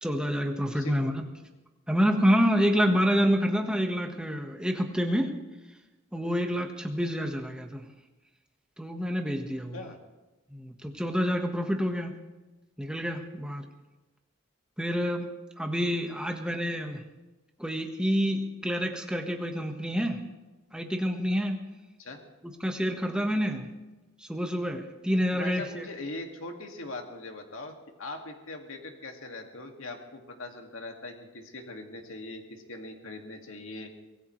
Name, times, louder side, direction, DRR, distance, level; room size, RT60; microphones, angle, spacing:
voice 1, 0.0-1.3 1.9-5.3 6.1-7.9 8.8-9.8 10.5-12.2 12.8-13.6 14.8-17.0 17.6-20.2 20.7-21.6 22.6-23.7 24.2-25.8, equal, 5° right, 3 dB, 1.4 m, -28 dB
voice 2, 0.7-1.1 9.7-10.0 22.0-22.2 25.3-33.9, left 2 dB, 80° left, 3 dB, 2.2 m, -41 dB
24.0 x 17.5 x 3.3 m, 1.1 s
head